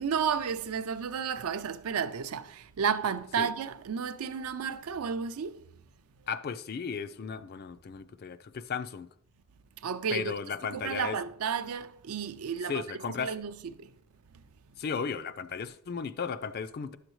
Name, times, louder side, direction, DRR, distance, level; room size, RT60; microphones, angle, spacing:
voice 1, 0.0-5.7 9.8-10.3 10.6-12.8 13.2-14.0, right 6 dB, 75° right, 0.4 m, -32 dB
voice 2, 6.3-9.1 10.1-11.2 12.7-13.3 14.8-17.0, left 6 dB, 45° left, 0.4 m, -35 dB
10.5 x 6.5 x 3.1 m
head